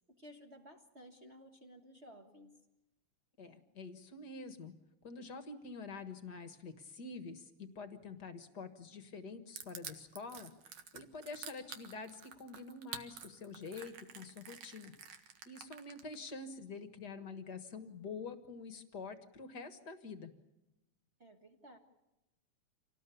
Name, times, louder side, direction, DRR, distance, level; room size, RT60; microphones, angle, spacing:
voice 1, 0.1-2.5 16.1-16.2 21.2-21.8, equal, 30° right, 4 dB, 1.3 m, -56 dB
voice 2, 3.4-4.7 5.0-14.9 15.4-20.3, left 4 dB, 45° left, 9 dB, 1.5 m, -47 dB
Crushing, 9.6-16.3, right 7 dB, 65° right, 2.8 m, -49 dB
27.5 x 18.5 x 8.5 m, 0.96 s
omnidirectional pair, 3.5 m